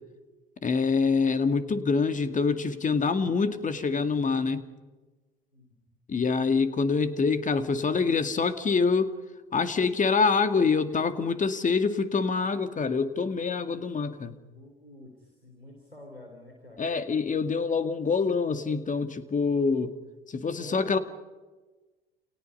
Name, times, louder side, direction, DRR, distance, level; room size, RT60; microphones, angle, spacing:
voice 1, 0.6-4.7 6.1-9.1 9.5-14.4 16.8-19.9 20.3-21.0, left 4 dB, 25° left, 10 dB, 2.1 m, -25 dB
voice 2, 5.5-5.9 14.5-16.9 20.5-21.0, left 1 dB, 90° left, 1 dB, 3.5 m, -48 dB
29.5 x 29.5 x 5.6 m, 1.2 s
figure-of-eight pair, 60°, 29 cm